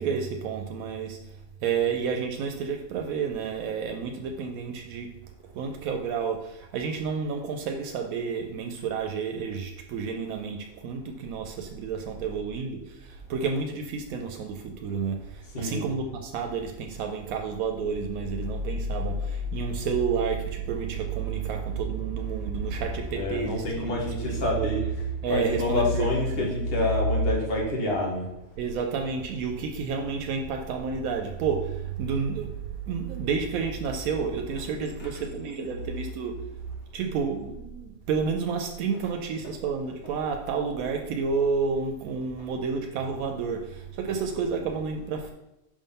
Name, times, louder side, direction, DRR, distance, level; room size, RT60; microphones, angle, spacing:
voice 1, 0.0-5.1 5.5-24.7 25.2-26.5 28.6-36.5 36.9-45.3, right 5 dB, 85° right, 4 dB, 1.0 m, -30 dB
voice 2, 15.5-15.8 23.1-24.8 25.3-28.3 35.0-35.1 39.4-39.5, left 2 dB, 45° left, -1 dB, 1.5 m, -28 dB
5.1 x 3.7 x 5.4 m, 0.91 s
omnidirectional pair, 1.5 m